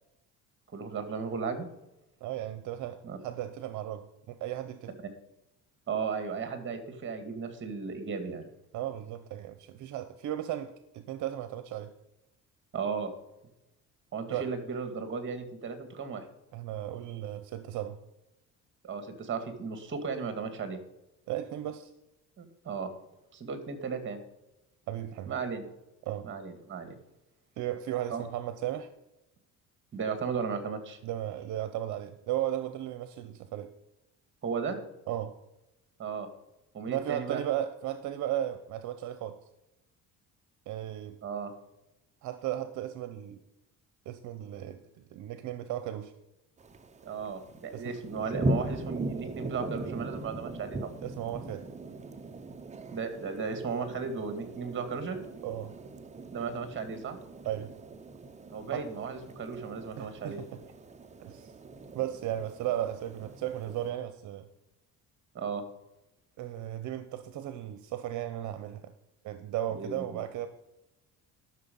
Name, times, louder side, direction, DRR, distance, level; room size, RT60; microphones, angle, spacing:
voice 1, 0.7-1.7 3.0-3.2 5.9-8.4 12.7-13.1 14.1-16.2 18.8-20.8 22.4-22.9 23.3-24.2 25.3-25.7 26.2-27.0 28.1-28.2 29.9-31.0 34.4-34.8 36.0-36.3 36.7-37.4 41.2-41.5 47.0-50.9 52.9-55.2 56.3-57.2 58.5-60.4 65.3-65.6 69.7-70.2, right 5 dB, 40° right, 8 dB, 2.3 m, -35 dB
voice 2, 2.2-4.9 8.7-11.9 14.3-14.5 16.5-18.0 21.3-21.9 24.9-25.3 26.1-26.3 27.6-28.9 31.0-33.7 35.1-35.3 36.9-39.4 40.7-41.2 42.2-43.4 44.1-44.8 45.1-46.1 47.7-47.9 51.0-51.6 55.4-55.7 57.4-57.7 58.7-58.9 60.0-60.6 61.2-61.5 61.9-64.5 66.4-68.8 69.2-70.5, right 12 dB, 70° right, 10 dB, 0.9 m, -35 dB
sound 1, 46.6-63.9, right 2 dB, 20° right, 0.8 m, -39 dB
12.5 x 6.5 x 5.4 m, 0.93 s
cardioid pair, 110°, 31 cm